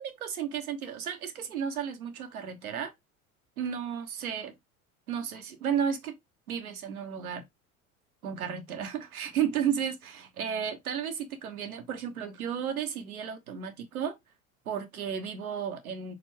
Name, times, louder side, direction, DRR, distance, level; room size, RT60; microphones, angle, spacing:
voice 1, 0.0-2.9 3.6-4.5 5.1-6.1 6.5-7.4 8.2-14.1 14.7-16.1, right 8 dB, 80° right, 1.0 m, -33 dB
4.4 x 2.4 x 4.3 m
hypercardioid pair, 75°, 43 cm